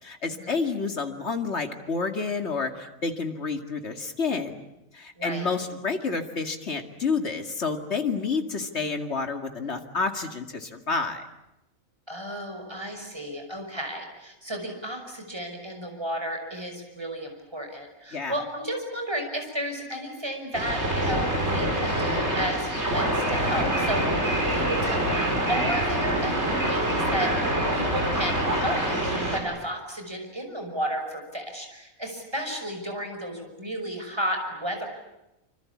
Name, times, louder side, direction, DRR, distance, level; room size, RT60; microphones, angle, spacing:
voice 1, 0.0-4.6 4.9-11.2 18.1-18.4, left 4 dB, 50° left, 6 dB, 2.5 m, -29 dB
voice 2, 5.2-5.5 12.1-34.8, equal, 20° right, 4 dB, 5.9 m, -33 dB
sound 1, 20.5-29.4, right 1 dB, 50° right, 6.0 m, -25 dB
26.5 x 26.0 x 8.6 m, 0.92 s
omnidirectional pair, 1.5 m